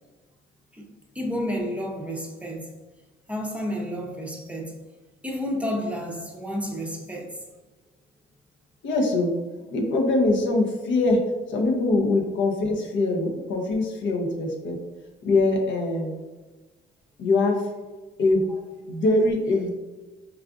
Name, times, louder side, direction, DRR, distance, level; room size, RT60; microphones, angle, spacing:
voice 1, 1.1-2.7 3.3-4.8 5.2-7.4, equal, 5° right, 0.5 m, -31 dB
voice 2, 8.8-9.4 9.7-11.2 11.5-14.8 15.2-16.2 17.2-17.7 18.2-18.5 18.9-19.7, left 2 dB, 70° left, 0.7 m, -23 dB
4.7 x 2.4 x 2.4 m
cardioid pair, 90°, 20 cm